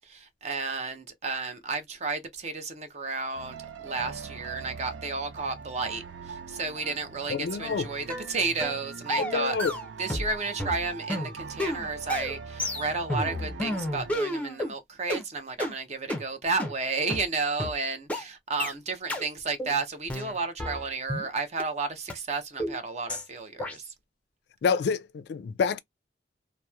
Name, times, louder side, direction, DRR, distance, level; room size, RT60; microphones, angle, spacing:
voice 1, 0.0-9.6 10.0-23.9, right 4 dB, 40° right, 0.5 m, -32 dB
sound 1, 3.3-14.2, right 5 dB, 85° right, 0.4 m, -42 dB
voice 2, 7.3-7.9 9.2-9.7 24.6-25.8, left 5 dB, 60° left, 0.3 m, -27 dB
sound 2, 8.1-8.3 8.6-8.8 9.1-10.3 10.6-14.7 15.1-15.2 15.6-15.7 16.1-16.2 16.6-16.7 17.1-17.2 17.6-17.7 18.1-18.2 18.6-18.7 19.1-19.2 19.6-19.8 20.1-21.3 21.6-21.7 22.1-22.2 22.6-22.8 23.1-23.3 23.6-23.8, left 1 dB, 10° left, 0.5 m, -31 dB
2.9 x 2.0 x 2.2 m
head